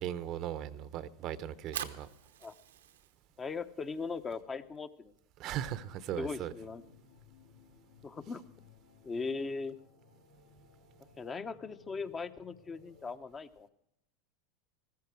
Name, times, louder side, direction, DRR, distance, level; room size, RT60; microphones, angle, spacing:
voice 1, 0.0-2.1 5.4-6.5, right 11 dB, 50° right, 0.8 m, -38 dB
Fire, 1.4-7.6, right 10 dB, 80° right, 1.0 m, -48 dB
voice 2, 3.4-5.1 6.2-6.8 8.0-8.4 9.0-9.8 11.2-13.7, left 4 dB, 25° left, 0.9 m, -39 dB
sound 1, 5.7-13.2, left 5 dB, 75° left, 4.4 m, -61 dB
15.0 x 14.0 x 4.7 m
hypercardioid pair, 95°, 0 cm